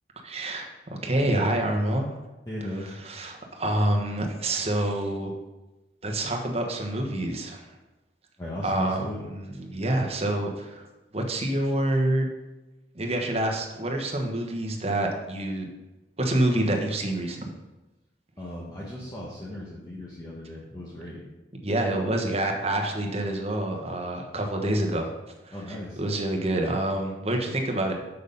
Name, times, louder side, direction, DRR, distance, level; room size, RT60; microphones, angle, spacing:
voice 1, 0.2-2.2 3.0-5.3 6.0-7.6 8.6-9.0 9.3-10.8 11.1-12.3 12.9-15.7 16.2-17.5 21.6-25.1 25.4-27.9, right 1 dB, 35° right, 2 dB, 1.2 m, -27 dB
voice 2, 2.5-2.9 8.4-9.2 18.4-21.2 25.5-26.0, left 1 dB, 20° left, -6 dB, 1.2 m, -36 dB
6.8 x 6.4 x 5.3 m, 1.1 s
head